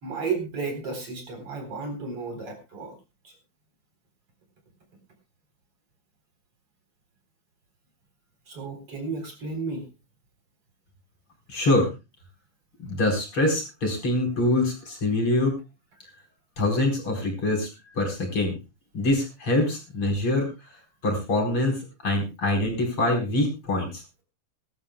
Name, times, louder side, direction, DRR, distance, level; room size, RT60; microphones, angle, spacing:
voice 1, 0.0-2.9 8.5-9.9, right 4 dB, 45° right, 4 dB, 4.9 m, -33 dB
voice 2, 11.5-11.9 12.8-15.5 16.6-17.7 18.0-18.5 18.9-20.5 21.0-21.8 22.0-24.2, left 1 dB, 40° left, 2 dB, 5.2 m, -24 dB
22.5 x 13.0 x 2.3 m, 0.28 s
omnidirectional pair, 3.5 m